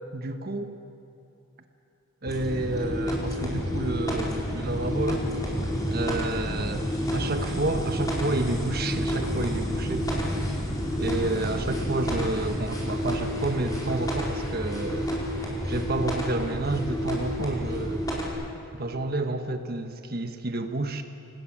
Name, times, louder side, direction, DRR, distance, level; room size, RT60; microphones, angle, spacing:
voice 1, 0.1-0.7 2.2-5.3 5.9-10.1 11.0-15.1 15.7-18.0 18.7-21.0, right 2 dB, 50° right, 7 dB, 1.4 m, -30 dB
sound 1, 2.3-18.3, equal, 20° left, 5.1 m, -29 dB
28.0 x 19.5 x 8.7 m, 2.7 s
head